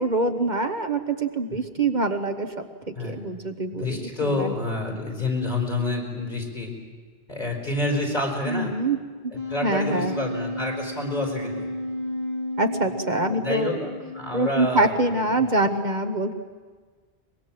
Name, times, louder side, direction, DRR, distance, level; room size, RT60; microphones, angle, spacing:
voice 1, 0.0-4.5 8.4-9.0 9.2-9.3 9.6-10.2 12.6-13.8 14.3-16.3, right 2 dB, 50° right, 6 dB, 1.2 m, -25 dB
voice 2, 3.7-6.7 7.3-8.7 9.5-11.7 13.4-13.9 14.1-14.9 15.4-15.5, left 2 dB, 45° left, 0 dB, 5.3 m, -28 dB
Wind instrument woodwind instrument, 9.3-15.0, left 1 dB, 75° right, 7.7 m, -33 dB
24.0 x 22.0 x 7.6 m, 1.5 s
omnidirectional pair, 1.0 m